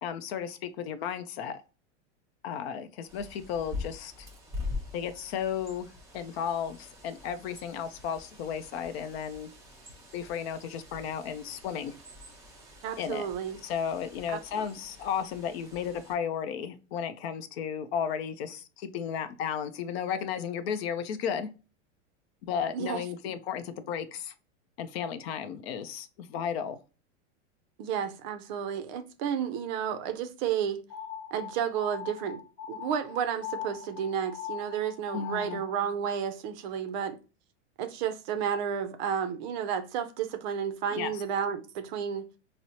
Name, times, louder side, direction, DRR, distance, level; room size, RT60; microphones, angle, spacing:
voice 1, 0.0-1.6 2.4-4.3 4.9-5.9 6.1-9.5 10.1-11.9 13.0-13.3 13.6-21.5 22.4-24.3 24.8-26.8 35.1-35.6 40.9-41.2, left 8 dB, 60° left, 0.5 m, -34 dB
Bird, 3.1-16.1, left 3 dB, 10° right, 0.8 m, -44 dB
voice 2, 12.8-13.6 14.3-14.6 22.7-23.3 27.8-30.8 31.3-32.4 32.7-37.2 37.8-42.3, right 8 dB, 40° right, 0.4 m, -32 dB
sound 1, 30.9-35.8, left 8 dB, 20° left, 0.7 m, -41 dB
4.2 x 2.0 x 2.7 m
supercardioid pair, 140°, 36 cm